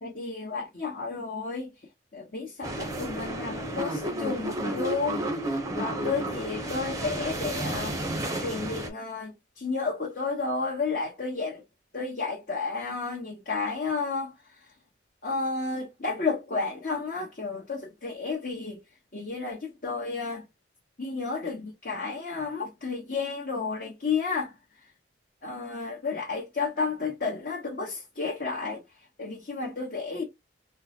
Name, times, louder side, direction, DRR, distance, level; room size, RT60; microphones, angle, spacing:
voice 1, 0.0-1.9 2.1-5.2 5.5-8.0 8.4-11.6 11.9-14.7 15.2-18.8 19.1-20.4 21.0-24.8 25.4-30.2, left 4 dB, 50° left, 1.0 m, -32 dB
sound 1, 2.6-8.9, right 1 dB, 15° right, 0.6 m, -32 dB
3.7 x 2.1 x 2.8 m
head